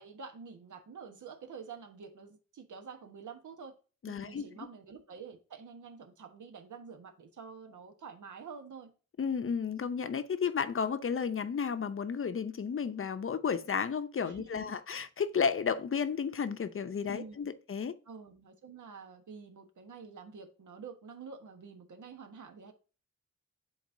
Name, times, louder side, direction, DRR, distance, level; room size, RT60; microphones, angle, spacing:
voice 1, 0.0-3.7 4.1-8.9 14.3-15.0 17.1-17.5 18.1-22.7, right 5 dB, 75° right, 1.3 m, -48 dB
voice 2, 4.0-4.4 9.2-17.9, left 6 dB, 45° left, 0.7 m, -32 dB
10.5 x 4.1 x 2.7 m
wide cardioid pair, 125°, 30 cm